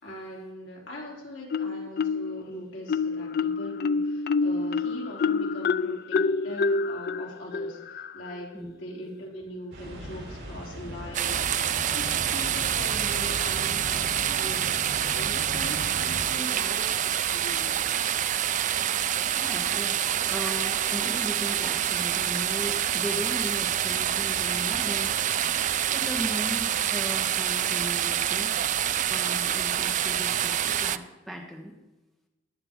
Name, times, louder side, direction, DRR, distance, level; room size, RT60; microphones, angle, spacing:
voice 1, 0.0-14.7 15.1-18.0, equal, 75° left, -3 dB, 3.7 m, -41 dB
Marimba xylophone, 1.5-2.4 2.9-8.4, left 4 dB, 55° left, 0.4 m, -27 dB
sound 1, 9.7-16.2, equal, 65° right, 4.0 m, -38 dB
sound 2, 11.1-31.0, right 10 dB, 40° right, 0.4 m, -27 dB
voice 2, 19.3-25.4 25.9-28.5 29.1-31.7, equal, ahead, 0 dB, 1.5 m, -37 dB
14.5 x 10.5 x 3.8 m, 1.1 s
head